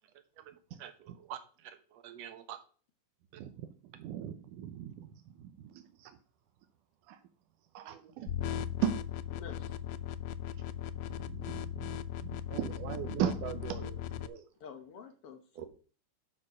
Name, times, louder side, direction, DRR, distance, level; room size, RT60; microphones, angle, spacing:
voice 1, 0.4-2.6 7.7-8.1 15.6-15.7, right 10 dB, 65° right, 9 dB, 2.1 m, -47 dB
voice 2, 3.3-3.7 4.0-6.2 7.1-7.2 7.7-9.1 11.1-14.5, right 10 dB, 85° right, 7 dB, 2.3 m, -38 dB
sound 1, 8.3-14.3, left 11 dB, 80° left, 1.6 m, -38 dB
voice 3, 9.3-9.7 14.6-15.6, left 6 dB, 60° left, 7 dB, 1.6 m, -48 dB
11.5 x 4.4 x 5.5 m, 0.39 s
omnidirectional pair, 3.5 m